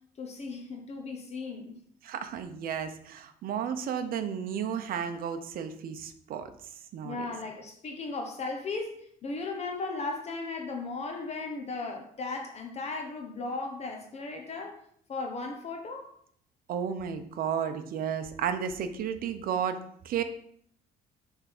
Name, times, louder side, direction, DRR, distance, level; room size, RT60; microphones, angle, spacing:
voice 1, 0.2-1.8 7.0-14.8 15.1-16.1, left 3 dB, 40° left, 3 dB, 1.0 m, -36 dB
voice 2, 2.0-6.5 6.9-7.2 16.7-20.2, right 8 dB, 60° right, 8 dB, 0.7 m, -33 dB
5.7 x 3.6 x 5.9 m, 0.66 s
cardioid pair, 110°, 17 cm